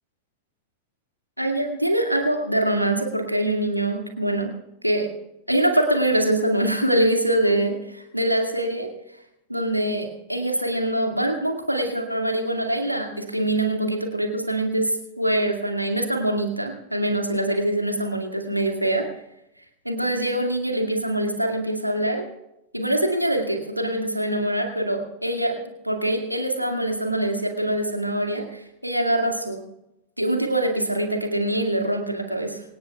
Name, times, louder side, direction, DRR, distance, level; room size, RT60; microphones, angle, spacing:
voice 1, 1.4-4.5 4.8-5.1 5.5-8.9 9.5-19.1 19.9-22.2 22.7-29.6 30.2-32.6, right 1 dB, 90° right, 3 dB, 2.2 m, -24 dB
25.0 x 18.0 x 2.4 m, 0.88 s
figure-of-eight pair, 90°, 0 cm